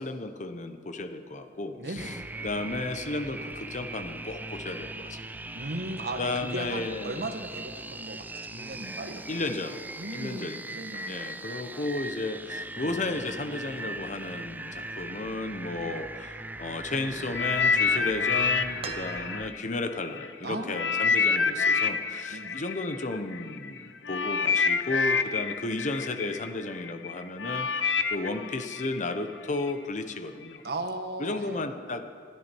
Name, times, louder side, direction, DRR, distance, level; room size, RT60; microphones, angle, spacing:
voice 1, 0.0-2.1 2.4-5.2 6.2-7.3 9.3-9.8 10.1-10.6 10.9-30.6 31.2-32.0, left 2 dB, 45° left, 8 dB, 1.1 m, -33 dB
voice 2, 1.8-2.3 5.5-9.2 10.0-11.2 20.4-20.9 22.3-22.6 30.6-31.7, right 2 dB, 65° right, 6 dB, 1.4 m, -37 dB
sound 1, 2.0-19.5, right 2 dB, 10° right, 0.4 m, -39 dB
sound 2, 17.3-20.3 20.7-29.7 30.4-30.6, left 5 dB, 85° left, 0.8 m, -28 dB
sound 3, 18.8-19.8 21.3-21.4, right 5 dB, 35° right, 1.2 m, -41 dB
21.0 x 13.5 x 4.6 m, 2.2 s
head